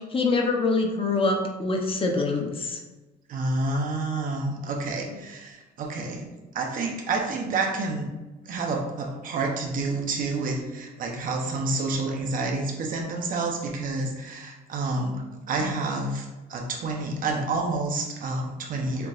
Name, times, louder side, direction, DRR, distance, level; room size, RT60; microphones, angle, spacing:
voice 1, 0.0-2.8 5.1-5.2, left 3 dB, 30° left, 1 dB, 0.8 m, -25 dB
voice 2, 3.3-6.3 6.5-8.1 8.5-19.1, right 3 dB, 55° right, 1 dB, 0.9 m, -29 dB
6.8 x 3.0 x 2.5 m, 1.1 s
cardioid pair, 110°, 17 cm